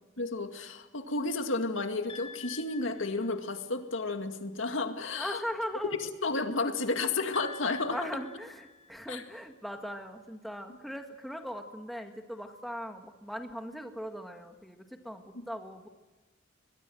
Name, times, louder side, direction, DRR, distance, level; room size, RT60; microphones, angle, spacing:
voice 1, 0.2-5.4 6.2-8.0 9.1-9.2 15.3-15.5, left 3 dB, 80° left, 6 dB, 2.0 m, -32 dB
sound 1, 2.1-3.7 7.3-9.4, left 5 dB, 30° left, 4.8 m, -47 dB
voice 2, 5.1-6.0 7.9-15.9, equal, ahead, 4 dB, 1.8 m, -39 dB
24.5 x 21.5 x 7.8 m, 1.2 s
head